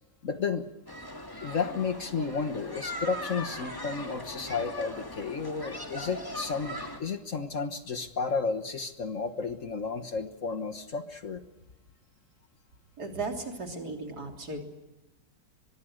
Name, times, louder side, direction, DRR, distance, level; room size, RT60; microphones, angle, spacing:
voice 1, 0.2-0.7 1.4-11.4, left 5 dB, 50° left, 8 dB, 1.5 m, -32 dB
sound 1, 0.9-7.0, left 1 dB, 10° left, 2.0 m, -39 dB
voice 2, 13.0-14.6, right 3 dB, 60° right, 3 dB, 3.8 m, -36 dB
24.0 x 22.5 x 6.4 m, 1.0 s
omnidirectional pair, 1.9 m